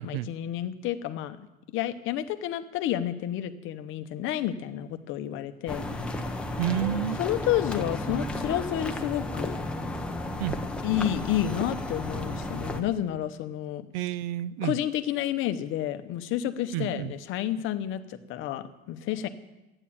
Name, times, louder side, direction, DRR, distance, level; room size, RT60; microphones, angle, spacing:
voice 1, 0.0-1.4 1.7-6.3 7.2-9.5 10.8-13.9 14.6-19.3, left 12 dB, 40° left, 10 dB, 0.9 m, -30 dB
sound 1, 5.7-12.8, left 1 dB, 5° left, 0.8 m, -33 dB
voice 2, 6.6-7.2 10.4-10.6 13.9-14.8 16.7-17.1, right 12 dB, 75° right, 18 dB, 0.7 m, -30 dB
13.5 x 9.9 x 8.6 m, 1.0 s
cardioid pair, 160°, 31 cm